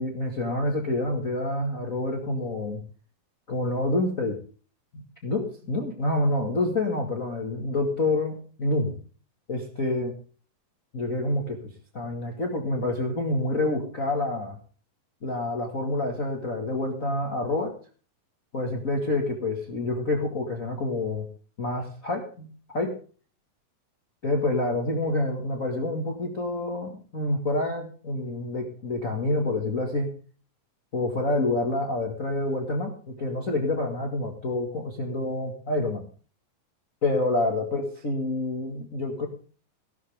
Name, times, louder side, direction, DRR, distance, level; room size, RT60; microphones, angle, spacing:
voice 1, 0.0-2.8 3.5-4.4 4.9-9.0 9.5-10.1 10.9-11.6 11.9-14.6 15.2-17.7 18.5-21.3 21.6-22.9 24.2-30.1 30.9-36.0 37.0-39.3, left 2 dB, 30° left, 2 dB, 1.7 m, -27 dB
16.5 x 12.5 x 3.6 m, 0.40 s
omnidirectional pair, 4.1 m